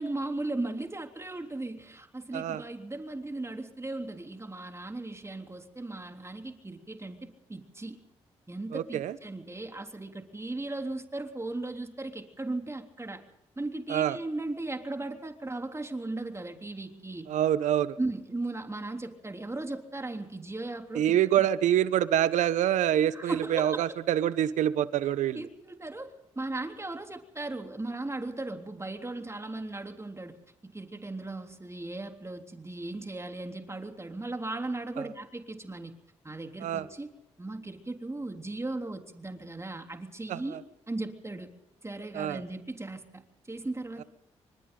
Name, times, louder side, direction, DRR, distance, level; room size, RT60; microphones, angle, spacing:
voice 1, 0.0-8.0 8.5-13.2 13.6-17.3 18.0-21.5 23.1-24.0 25.3-30.3 30.6-35.9 36.2-37.1 37.4-40.6 40.9-41.5 41.8-44.0, right 2 dB, 20° right, 4 dB, 3.5 m, -37 dB
voice 2, 8.7-9.2 13.9-14.2 17.3-18.0 20.9-25.4 36.6-36.9 40.3-40.6 42.1-42.4, right 11 dB, 80° right, 15 dB, 1.1 m, -26 dB
27.0 x 24.5 x 3.9 m, 0.87 s
supercardioid pair, 50°, 12 cm